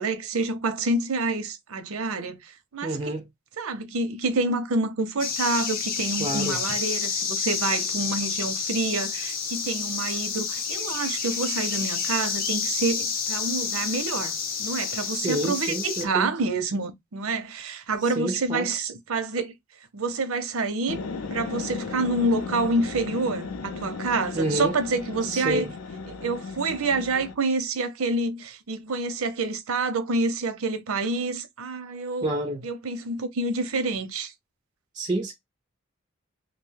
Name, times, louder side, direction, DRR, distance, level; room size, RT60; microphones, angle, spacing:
voice 1, 0.0-3.0 3.6-14.3 14.6-19.5 19.9-21.0 21.3-25.7 26.1-32.3 32.6-34.3, right 3 dB, 90° right, 0.6 m, -28 dB
voice 2, 2.8-3.3 6.2-6.6 15.1-16.3 18.0-18.7 24.3-24.8 25.2-25.7 32.2-32.7 34.9-35.3, right 1 dB, 20° right, 0.3 m, -29 dB
sound 1, 5.2-16.0, left 6 dB, 40° left, 0.6 m, -29 dB
sound 2, 20.9-27.3, left 4 dB, 90° left, 0.5 m, -35 dB
2.6 x 2.1 x 3.2 m
head